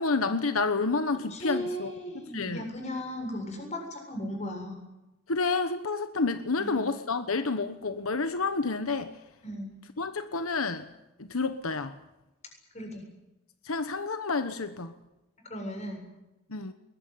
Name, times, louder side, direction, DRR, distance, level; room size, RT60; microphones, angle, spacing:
voice 1, 0.0-1.9 2.3-2.7 5.3-9.1 10.0-10.9 11.2-12.0 13.6-14.9 16.5-16.7, left 4 dB, 85° left, 10 dB, 1.2 m, -29 dB
voice 2, 1.3-4.8 6.6-6.9 9.4-9.7 12.7-13.0 15.4-16.1, equal, 35° left, 3 dB, 7.5 m, -36 dB
22.0 x 21.0 x 9.5 m, 0.97 s
head